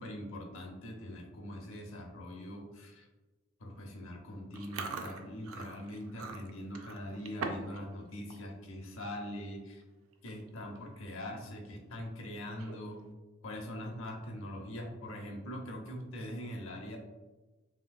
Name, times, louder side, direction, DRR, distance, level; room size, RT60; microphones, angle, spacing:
voice 1, 0.0-3.1 3.6-9.8 10.2-13.0 13.4-17.0, left 1 dB, 80° left, 1 dB, 0.7 m, -42 dB
Chewing mastication, 4.5-7.8 8.1-8.4 8.8-9.1 9.8-9.9 10.1-10.5 10.9-11.0 12.4-13.0, right 4 dB, 85° right, 0.4 m, -42 dB
3.4 x 2.8 x 2.3 m, 1.2 s
head